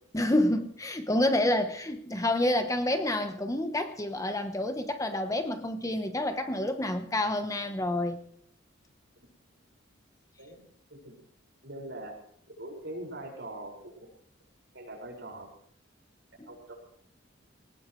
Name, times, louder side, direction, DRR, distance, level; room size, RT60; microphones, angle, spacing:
voice 1, 0.1-8.2 16.4-16.5, left 1 dB, 15° left, 7 dB, 1.1 m, -28 dB
voice 2, 11.6-12.2 12.6-13.9 14.7-15.5 16.5-16.8, right 1 dB, 60° right, 1 dB, 5.9 m, -42 dB
20.5 x 19.0 x 3.3 m, 0.64 s
head